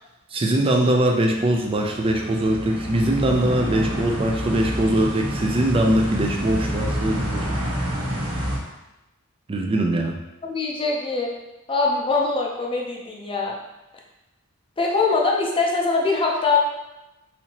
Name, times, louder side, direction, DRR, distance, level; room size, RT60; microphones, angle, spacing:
voice 1, 0.3-7.5 9.5-10.2, right 1 dB, 25° right, 2 dB, 0.4 m, -22 dB
sound 1, 1.4-8.6, equal, 80° right, 1.2 m, -28 dB
voice 2, 10.4-11.3 11.7-13.5 14.8-16.6, left 3 dB, 25° left, -1 dB, 0.6 m, -22 dB
4.2 x 2.8 x 2.8 m, 0.99 s
head